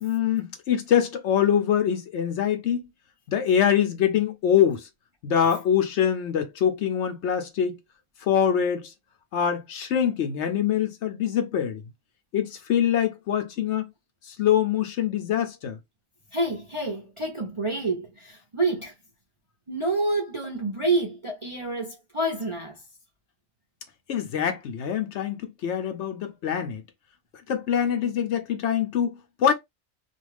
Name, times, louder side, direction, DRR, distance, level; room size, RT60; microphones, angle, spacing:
voice 1, 0.0-2.9 3.3-4.9 5.2-7.8 8.2-8.9 9.3-11.8 12.3-13.9 14.2-15.8 24.1-26.8 27.5-29.5, left 9 dB, 65° left, 0.8 m, -24 dB
voice 2, 16.3-18.9 19.7-22.8, right 2 dB, 40° right, 0.4 m, -28 dB
2.5 x 2.3 x 3.2 m
omnidirectional pair, 1.4 m